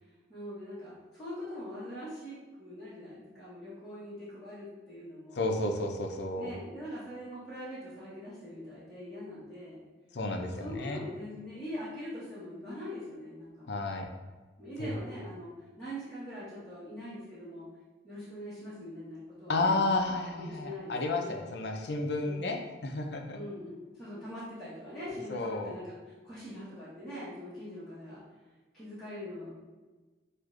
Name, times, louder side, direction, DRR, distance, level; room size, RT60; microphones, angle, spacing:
voice 1, 0.3-5.5 6.4-9.8 10.4-13.8 14.6-15.5 15.8-17.7 18.0-19.8 20.3-21.4 22.2-22.5 23.3-28.2 28.7-29.5, equal, ahead, -14 dB, 1.0 m, -42 dB
voice 2, 5.4-6.5 10.1-11.0 13.7-14.1 14.8-14.9 19.5-23.4 25.3-25.7, left 2 dB, 65° left, 3 dB, 0.5 m, -32 dB
6.2 x 2.5 x 2.4 m, 1.3 s
head